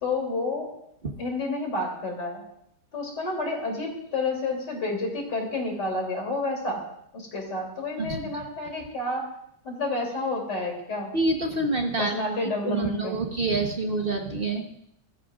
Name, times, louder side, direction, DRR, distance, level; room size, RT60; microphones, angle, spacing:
voice 1, 0.0-0.7 1.2-2.4 2.9-6.8 7.1-9.3 9.6-11.1 12.0-13.2, left 2 dB, 80° left, 1 dB, 3.6 m, -30 dB
voice 2, 8.0-8.3 11.1-12.1 12.4-14.8, right 2 dB, 35° right, 3 dB, 1.1 m, -27 dB
21.0 x 13.5 x 2.4 m, 0.73 s
omnidirectional pair, 1.8 m